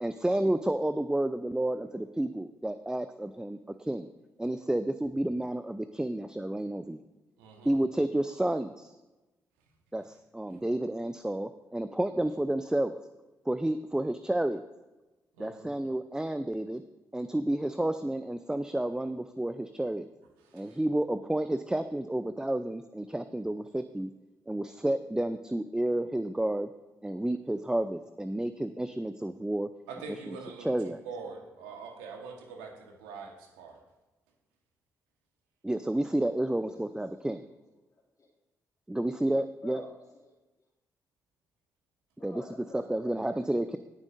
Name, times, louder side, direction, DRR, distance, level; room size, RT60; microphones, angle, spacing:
voice 1, 0.0-4.1 4.4-7.0 7.6-8.9 9.9-12.9 13.5-14.6 15.4-16.8 17.1-20.0 20.5-24.1 24.5-26.7 27.0-29.7 30.3-31.0 35.6-37.4 38.9-39.8 42.2-42.4 42.7-43.8, right 1 dB, 10° right, 10 dB, 0.5 m, -30 dB
voice 2, 7.4-7.7 15.4-15.7 20.4-20.8 29.9-33.8, right 4 dB, 80° right, 2 dB, 1.4 m, -44 dB
voice 3, 36.1-37.6 37.9-38.3 39.6-40.3 42.2-43.7, left 2 dB, 50° left, -6 dB, 2.6 m, -51 dB
19.0 x 7.1 x 2.6 m, 1.1 s
hypercardioid pair, 40°, 8 cm